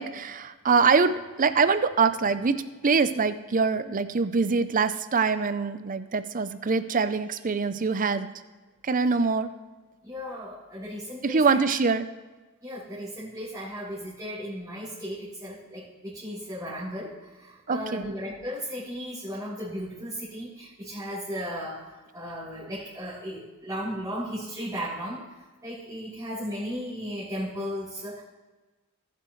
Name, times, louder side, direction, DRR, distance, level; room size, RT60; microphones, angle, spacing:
voice 1, 0.0-8.3 8.8-9.5 11.2-12.1 17.7-18.1, right 4 dB, 40° right, 12 dB, 0.6 m, -24 dB
voice 2, 10.0-11.6 12.6-25.2 25.6-28.2, equal, 15° right, -13 dB, 3.7 m, -35 dB
19.0 x 7.7 x 3.2 m, 1.3 s
head